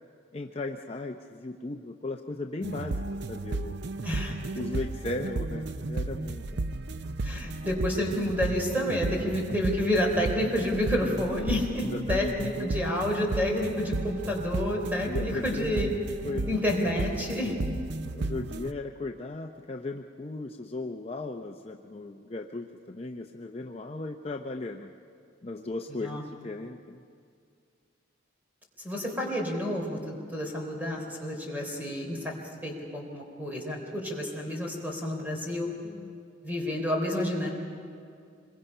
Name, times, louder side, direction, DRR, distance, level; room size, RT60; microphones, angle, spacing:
voice 1, 0.3-3.8 4.5-6.5 9.3-9.4 11.8-12.4 12.7-12.8 15.1-15.9 16.2-16.5 18.1-24.9 25.4-27.0 35.8-36.1, left 2 dB, 30° left, 3 dB, 0.6 m, -37 dB
sound 1, 2.6-18.7, right 2 dB, 55° right, 0.6 m, -34 dB
voice 2, 4.0-4.4 7.2-15.9 16.5-17.6 26.0-26.2 28.8-32.3 32.6-35.7 36.4-37.5, left 1 dB, 10° right, 0 dB, 3.5 m, -29 dB
26.0 x 22.5 x 5.5 m, 2.4 s
head